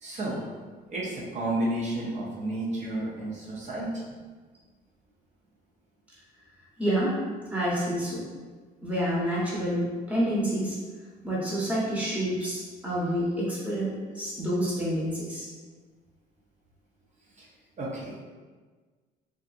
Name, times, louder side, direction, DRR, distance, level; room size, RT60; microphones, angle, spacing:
voice 1, 0.0-0.4 0.9-4.2 17.4-17.5 17.8-18.2, right 1 dB, 45° right, -5 dB, 0.6 m, -31 dB
voice 2, 6.8-7.2 7.5-8.2 8.8-10.8 11.2-15.5, equal, 10° right, -7 dB, 0.9 m, -28 dB
2.6 x 2.4 x 2.5 m, 1.4 s
cardioid pair, 110°, 17 cm